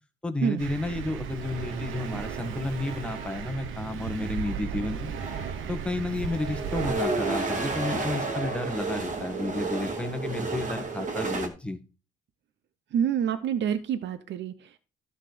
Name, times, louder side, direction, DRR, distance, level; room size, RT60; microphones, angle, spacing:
voice 1, 0.2-5.1 5.7-11.8, left 2 dB, 5° left, 6 dB, 1.7 m, -32 dB
Thunder, 0.6-6.9, right 7 dB, 90° right, 1.2 m, -36 dB
sound 1, 1.4-3.6 4.6-4.7 5.0-11.5, right 3 dB, 40° right, 2.5 m, -32 dB
voice 2, 12.9-14.8, right 8 dB, 65° right, 11 dB, 0.9 m, -27 dB
12.5 x 4.1 x 6.8 m, 0.33 s
cardioid pair, 90°, 20 cm